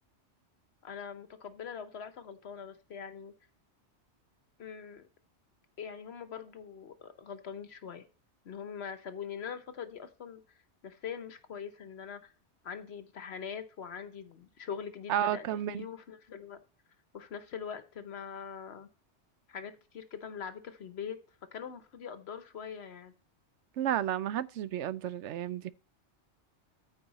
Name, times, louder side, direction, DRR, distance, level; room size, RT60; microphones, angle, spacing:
voice 1, 0.8-3.3 4.6-5.0 5.8-8.0 8.4-10.4 10.8-12.3 12.6-16.6 17.1-18.9 19.5-21.2 21.5-23.1, left 7 dB, 65° left, 1.1 m, -42 dB
voice 2, 15.1-15.8 23.8-25.7, right 11 dB, 90° right, 0.9 m, -32 dB
13.5 x 4.8 x 4.1 m
omnidirectional pair, 1.2 m